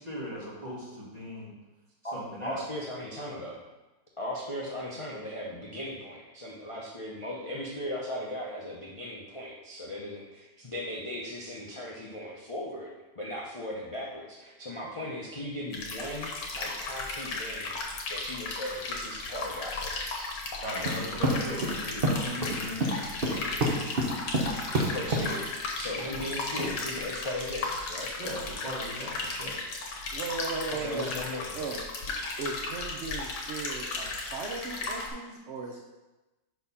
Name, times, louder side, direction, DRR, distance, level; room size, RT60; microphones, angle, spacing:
voice 1, 0.0-1.5 2.1-2.6 20.6-23.5 25.9-26.1 28.2-29.6, equal, 25° right, -5 dB, 1.6 m, -39 dB
voice 2, 2.0-3.6 4.2-16.3 16.5-17.8 18.1-20.3 24.9-25.5 25.7-28.1 30.8-31.7, left 1 dB, 35° left, -4 dB, 0.4 m, -37 dB
sound 1, 15.7-35.1, left 3 dB, 75° left, 1.8 m, -35 dB
sound 2, 20.8-25.3 26.2-27.0, right 1 dB, 40° right, 0.9 m, -28 dB
voice 3, 30.1-31.1 31.5-31.8 32.3-35.8, right 4 dB, 80° right, 0 dB, 0.6 m, -37 dB
5.6 x 4.5 x 5.5 m, 1.1 s
omnidirectional pair, 1.9 m